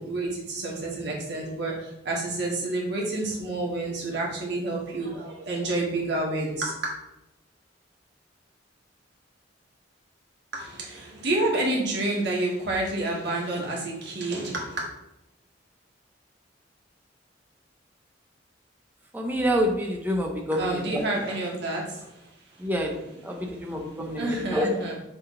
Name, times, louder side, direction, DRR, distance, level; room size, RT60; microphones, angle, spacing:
voice 1, 0.0-1.7 2.0-6.8 10.5-14.8 20.5-21.8 24.2-24.9, right 2 dB, 65° right, -3 dB, 1.8 m, -29 dB
voice 2, 19.1-21.0 22.6-24.8, equal, 10° right, 0 dB, 0.9 m, -27 dB
6.9 x 3.6 x 4.0 m, 0.89 s
head